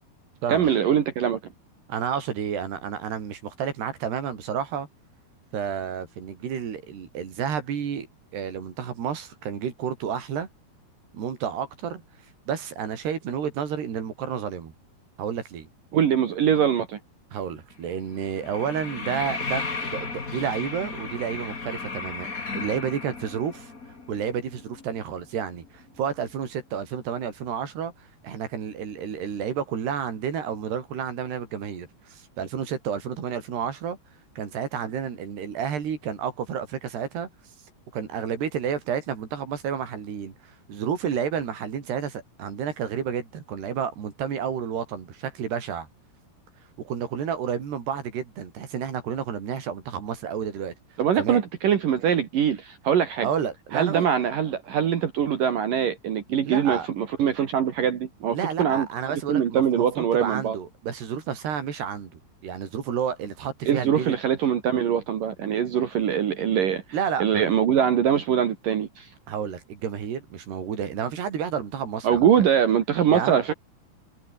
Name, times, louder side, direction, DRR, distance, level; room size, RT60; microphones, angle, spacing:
voice 1, 0.5-1.4 15.9-17.0 51.0-53.3 53.7-58.9 59.3-60.6 63.7-66.8 67.2-69.1 72.0-73.5, right 8 dB, 60° right, 3.4 m, -23 dB
voice 2, 1.9-4.9 5.5-8.1 8.3-10.5 11.1-12.0 12.5-14.7 15.2-15.7 17.3-22.3 22.5-23.7 24.1-27.9 28.2-34.0 34.4-37.3 37.9-40.4 40.7-45.9 46.8-50.7 51.2-51.4 53.2-54.1 56.4-56.9 58.3-64.2 66.9-67.3 69.3-72.3 73.1-73.4, right 7 dB, 80° right, 5.7 m, -30 dB
sound 1, 17.7-26.0 26.3-26.4, left 4 dB, 25° left, 2.7 m, -35 dB
omnidirectional pair, 4.6 m